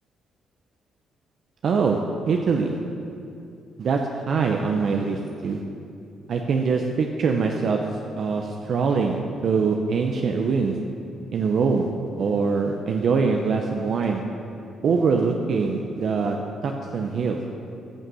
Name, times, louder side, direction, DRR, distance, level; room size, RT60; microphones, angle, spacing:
voice 1, 1.6-2.0 2.2-2.8 3.8-5.6 6.3-7.8 8.1-10.8 11.3-11.9 12.2-14.2 14.8-16.4 16.6-17.4, right 5 dB, 60° right, 2 dB, 0.8 m, -23 dB
14.5 x 6.5 x 6.3 m, 2.6 s
cardioid pair, 90°, 0 cm